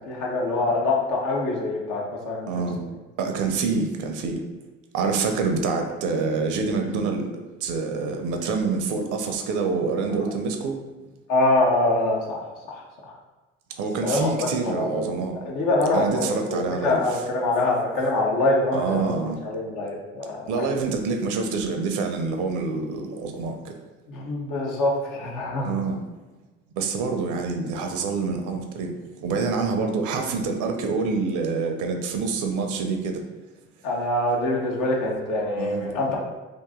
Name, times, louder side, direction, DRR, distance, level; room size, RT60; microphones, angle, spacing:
voice 1, 0.1-2.6 11.3-12.8 14.0-15.1 15.4-19.1 19.4-20.7 24.1-25.7 33.8-36.2, left 2 dB, 65° left, -2 dB, 1.0 m, -24 dB
voice 2, 2.5-2.8 3.2-4.4 4.9-7.3 7.6-10.8 13.8-15.4 15.9-17.2 18.7-19.4 20.5-23.7 25.6-26.0 26.8-28.9 29.2-33.2 35.6-35.9, right 4 dB, 65° right, 4 dB, 0.6 m, -26 dB
2.9 x 2.5 x 3.6 m, 1.3 s
hypercardioid pair, 60°, 33 cm